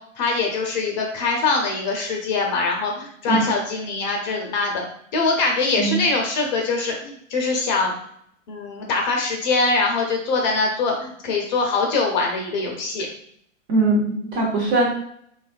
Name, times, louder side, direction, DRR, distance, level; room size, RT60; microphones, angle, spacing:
voice 1, 0.2-4.8 5.1-7.9 8.5-13.1, left 3 dB, 35° left, 1 dB, 0.6 m, -23 dB
voice 2, 13.7-14.9, right 2 dB, 25° right, -2 dB, 0.6 m, -20 dB
3.0 x 2.3 x 2.4 m, 0.68 s
hypercardioid pair, 120°, 39 cm